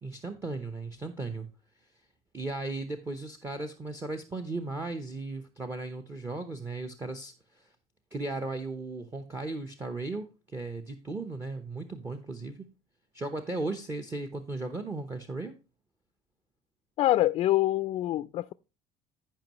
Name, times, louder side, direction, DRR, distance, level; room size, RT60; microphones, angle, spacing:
voice 1, 0.0-1.5 2.3-7.7 8.1-12.7 13.1-15.5, right 2 dB, 20° right, 0.9 m, -36 dB
voice 2, 17.0-18.5, left 15 dB, 50° left, 0.4 m, -25 dB
14.5 x 5.5 x 3.0 m
cardioid pair, 140°, 12 cm